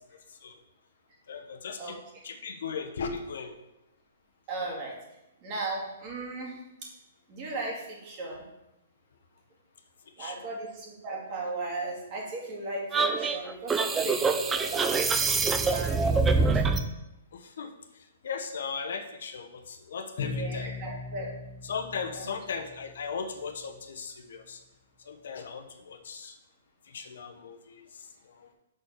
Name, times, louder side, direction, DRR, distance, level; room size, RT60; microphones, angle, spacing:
voice 1, 1.3-2.0 2.2-3.6 10.2-10.5 17.3-20.7 21.6-24.6 25.1-26.4 26.8-28.5, left 5 dB, 70° left, 6 dB, 0.9 m, -38 dB
voice 2, 4.5-5.0 5.4-6.6 7.3-8.4 10.2-14.9 15.6-16.6 20.3-21.3 22.1-22.3, right 2 dB, 30° right, -2 dB, 2.1 m, -36 dB
sound 1, 12.9-16.9, right 4 dB, 10° right, 0.4 m, -25 dB
Bowed string instrument, 20.2-23.0, left 4 dB, 45° left, 1.3 m, -38 dB
6.2 x 4.3 x 6.3 m, 0.90 s
hypercardioid pair, 165°, 0 cm